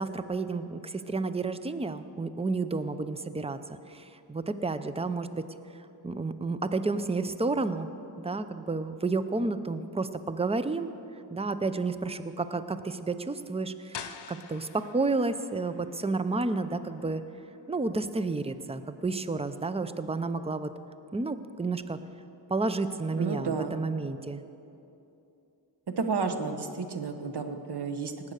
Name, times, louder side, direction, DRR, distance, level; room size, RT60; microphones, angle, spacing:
voice 1, 0.0-3.6 3.9-5.5 6.0-7.9 8.2-10.9 11.3-17.2 17.7-20.7 21.1-22.0 22.5-24.4, right 3 dB, 15° right, 11 dB, 0.6 m, -31 dB
sound 1, 13.9-19.6, left 7 dB, 75° left, 0.8 m, -48 dB
voice 2, 23.2-23.7 26.0-28.3, right 4 dB, 65° right, 7 dB, 1.2 m, -31 dB
18.5 x 8.7 x 6.5 m, 2.8 s
wide cardioid pair, 70°, 43 cm